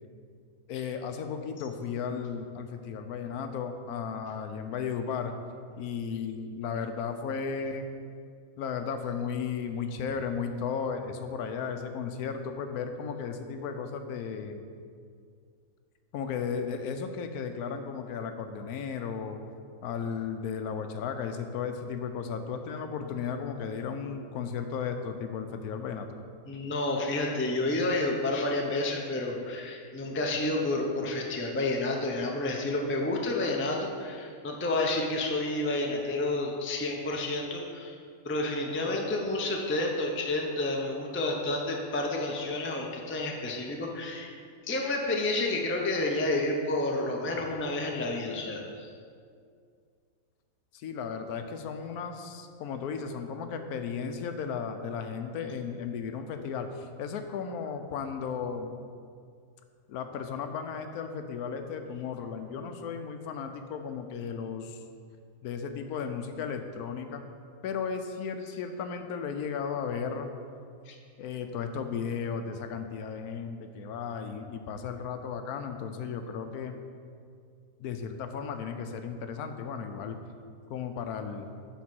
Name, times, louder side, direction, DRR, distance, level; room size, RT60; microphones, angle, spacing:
voice 1, 0.7-5.3 5.8-7.8 8.6-14.7 16.1-19.4 19.8-26.1 50.7-58.7 59.9-64.8 65.4-67.2 67.6-70.3 71.2-76.8 77.8-80.2 80.7-81.5, left 6 dB, 80° left, 7 dB, 1.1 m, -35 dB
voice 2, 26.5-37.9 38.2-44.3 44.6-48.9 70.9-71.0, left 2 dB, 20° left, 0 dB, 0.4 m, -30 dB
7.2 x 4.5 x 6.1 m, 2.2 s
omnidirectional pair, 1.6 m